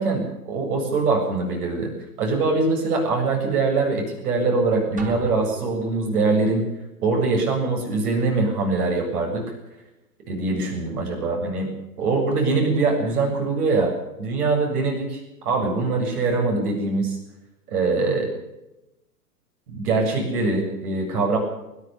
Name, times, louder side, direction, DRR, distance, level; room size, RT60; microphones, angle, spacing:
voice 1, 0.0-1.9 2.2-6.6 7.0-9.4 10.3-11.7 12.0-13.9 14.2-17.2 17.7-18.3 19.7-21.4, right 3 dB, 65° right, 2 dB, 7.5 m, -23 dB
sound 1, 5.0-6.4, right 5 dB, 15° right, 3.6 m, -38 dB
27.0 x 12.0 x 8.3 m, 0.95 s
hypercardioid pair, 125°, 47 cm